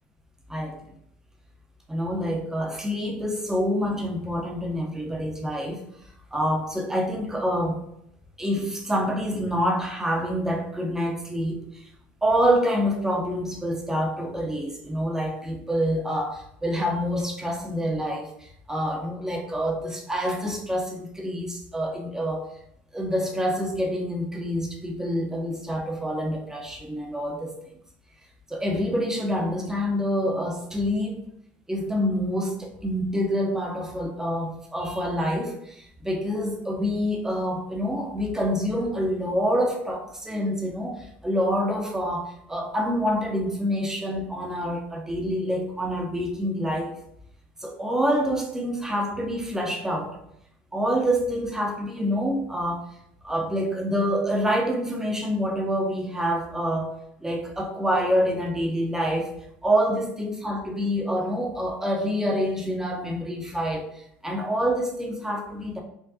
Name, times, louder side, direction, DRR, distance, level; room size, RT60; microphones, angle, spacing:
voice 1, 1.9-5.9 6.3-7.8 8.4-11.8 12.2-22.4 22.9-27.5 28.5-31.2 31.7-46.9 47.6-50.2 50.7-52.8 53.2-56.9 57.2-59.3 59.6-63.8 64.2-65.8, equal, 10° right, 1 dB, 0.9 m, -27 dB
4.5 x 2.5 x 2.8 m, 0.76 s
supercardioid pair, 85°, 5 cm